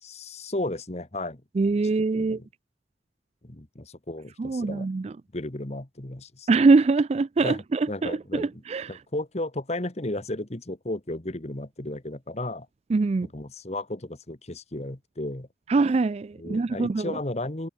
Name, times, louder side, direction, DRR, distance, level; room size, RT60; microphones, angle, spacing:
voice 1, 0.0-1.4 2.0-2.5 3.4-4.9 5.3-6.5 7.4-8.5 8.9-12.7 13.3-15.5 16.4-17.7, left 1 dB, 35° left, 1.5 m, -34 dB
voice 2, 1.6-2.4 4.4-5.1 6.5-8.9 12.9-13.3 15.7-17.1, right 3 dB, 35° right, 0.3 m, -23 dB
head